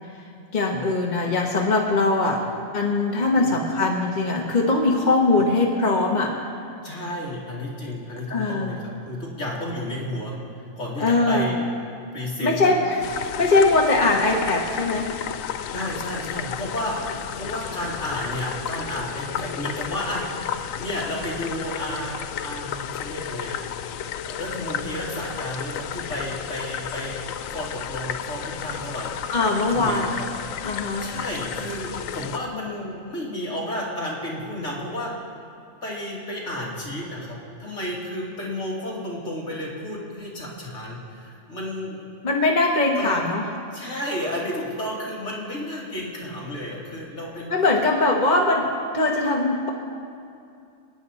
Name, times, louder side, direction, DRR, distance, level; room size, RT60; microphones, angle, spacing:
voice 1, 0.5-2.4 2.7-6.3 8.3-8.7 11.0-11.5 12.4-15.3 29.3-30.1 30.6-31.1 42.2-43.4 47.5-48.7 48.9-49.7, left 2 dB, 35° left, -1 dB, 1.3 m, -21 dB
voice 2, 6.8-10.4 10.8-11.6 12.1-12.7 15.7-20.3 20.8-23.7 24.2-29.1 29.7-30.6 31.0-35.1 35.8-42.0 43.0-43.2 43.7-47.5, left 1 dB, 60° left, -5 dB, 2.9 m, -32 dB
sound 1, 13.0-32.4, left 9 dB, 80° left, 0.9 m, -33 dB
28.0 x 9.6 x 4.1 m, 2.5 s
omnidirectional pair, 1.4 m